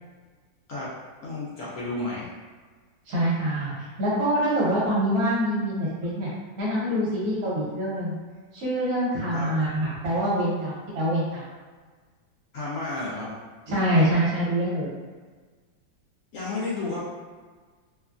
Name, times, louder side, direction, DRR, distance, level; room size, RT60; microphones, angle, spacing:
voice 1, 1.2-2.3 9.3-9.5 12.5-13.3 16.3-17.0, left 2 dB, 70° left, -7 dB, 0.7 m, -31 dB
voice 2, 3.1-6.3 6.6-8.2 8.5-11.4 13.7-14.9, right 1 dB, 55° right, -7 dB, 1.3 m, -25 dB
3.0 x 2.2 x 2.4 m, 1.4 s
omnidirectional pair, 2.0 m